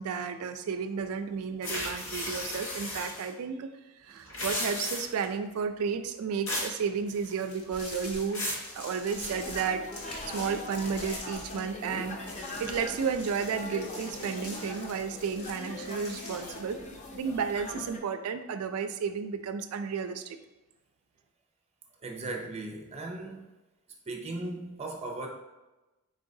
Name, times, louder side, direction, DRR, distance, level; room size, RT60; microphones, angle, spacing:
voice 1, 0.0-3.7 4.0-9.9 10.3-16.8 17.1-20.4, right 6 dB, 80° right, 8 dB, 0.3 m, -32 dB
sound 1, 1.6-3.3 4.2-5.3 6.5-6.8 7.1-7.6 8.0-8.7, left 1 dB, 65° left, 1.2 m, -34 dB
sound 2, 7.5-11.9 12.2-16.6, left 2 dB, 85° left, 1.1 m, -44 dB
sound 3, 9.1-18.0, left 2 dB, 30° left, 0.5 m, -41 dB
voice 2, 22.0-23.5 24.0-25.3, right 2 dB, 30° right, 2 dB, 0.6 m, -37 dB
4.2 x 3.8 x 2.6 m, 1.1 s
head